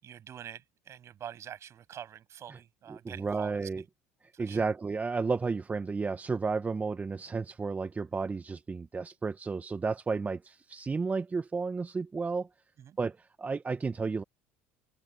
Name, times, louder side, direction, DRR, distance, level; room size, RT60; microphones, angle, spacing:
voice 1, 0.0-3.9 4.3-4.7 12.8-13.0, right 9 dB, 45° right, 7.4 m, -46 dB
voice 2, 2.9-3.8 4.2-12.5 13.0-14.2, right 4 dB, 20° right, 1.3 m, -32 dB
open air
hypercardioid pair, 70°, 7 cm